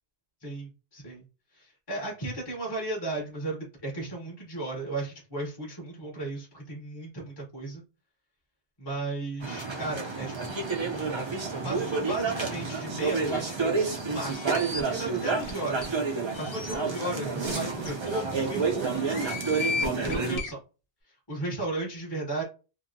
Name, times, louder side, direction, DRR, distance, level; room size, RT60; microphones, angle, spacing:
voice 1, 0.4-1.2 1.5-7.8 8.8-10.6 11.6-19.1 20.0-20.6 21.1-22.4, right 2 dB, 25° left, -3 dB, 0.8 m, -35 dB
sound 1, 9.4-20.4, right 4 dB, 40° right, 0.4 m, -30 dB
sound 2, 14.3-14.8 15.4-15.5 15.8-15.9 16.3-16.7 17.5-17.6 17.9-18.0 18.9-20.5, left 4 dB, 60° left, 0.9 m, -34 dB
2.8 x 2.6 x 2.6 m, 0.33 s
omnidirectional pair, 1.1 m